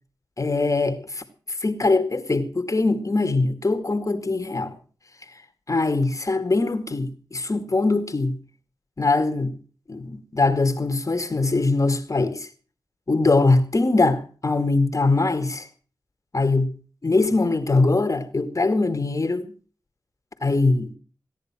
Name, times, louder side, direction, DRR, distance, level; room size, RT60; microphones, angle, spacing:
voice 1, 0.4-1.2 1.6-4.8 5.7-8.4 9.0-9.6 9.9-12.5 13.1-15.7 16.3-16.7 17.0-19.5 20.4-20.9, left 3 dB, 40° left, 2.2 m, -22 dB
16.0 x 10.5 x 6.1 m
cardioid pair, 50°, 8 cm